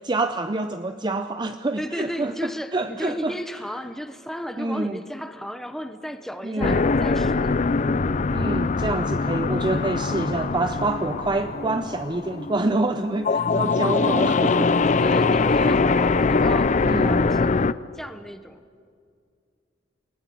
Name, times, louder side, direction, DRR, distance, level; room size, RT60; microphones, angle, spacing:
voice 1, 0.0-3.3 4.6-5.0 6.4-6.9 8.3-14.9 15.6-15.8 16.8-17.2, right 2 dB, 25° right, 8 dB, 0.7 m, -27 dB
voice 2, 1.8-7.6 14.9-17.5 17.9-18.6, equal, ahead, 8 dB, 1.0 m, -34 dB
sound 1, 6.6-17.7, left 4 dB, 40° left, 0.5 m, -22 dB
29.0 x 19.5 x 8.6 m, 2.2 s
head